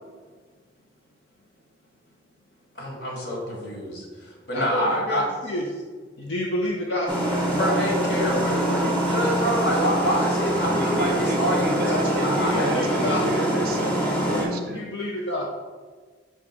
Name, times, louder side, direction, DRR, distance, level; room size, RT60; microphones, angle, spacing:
voice 1, 2.8-5.3 7.5-12.9, equal, 65° left, -2 dB, 1.7 m, -27 dB
voice 2, 4.5-5.8 6.2-7.3 11.8-13.2 14.7-15.4, left 1 dB, 80° left, -2 dB, 0.7 m, -29 dB
sound 1, 7.1-14.5, right 1 dB, 5° left, 1.2 m, -24 dB
voice 3, 10.7-14.9, right 2 dB, 50° right, 4 dB, 0.4 m, -32 dB
5.4 x 3.5 x 5.1 m, 1.5 s
head